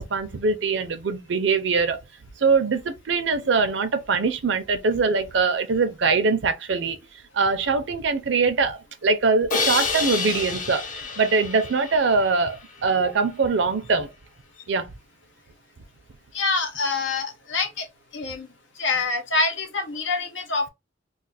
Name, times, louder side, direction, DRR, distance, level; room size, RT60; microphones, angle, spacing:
voice 1, 0.0-2.0 2.4-7.0 7.3-14.1 14.7-14.9, right 4 dB, 70° right, 0.5 m, -23 dB
Crash cymbal, 9.5-12.6, left 4 dB, 45° left, 0.7 m, -28 dB
voice 2, 16.3-17.9 18.1-18.5 18.8-20.7, left 3 dB, 80° left, 0.8 m, -26 dB
2.4 x 2.4 x 4.0 m
head